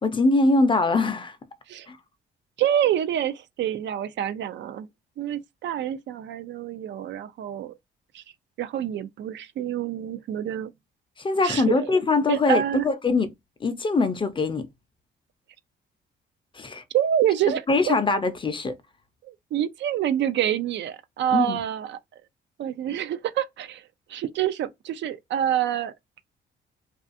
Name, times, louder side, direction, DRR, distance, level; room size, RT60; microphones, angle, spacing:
voice 1, 0.0-1.4 1.9-2.0 11.2-13.3 13.6-14.7 16.5-16.8 17.7-18.7 21.3-21.6, left 3 dB, 25° left, 0.5 m, -22 dB
voice 2, 2.6-4.9 5.2-7.7 8.1-8.2 8.6-10.7 11.4-11.9 12.3-12.8 16.9-18.0 19.2-22.0 22.6-23.8 24.1-25.9, right 10 dB, 65° right, 0.4 m, -27 dB
2.4 x 2.3 x 2.5 m
cardioid pair, 90°, 20 cm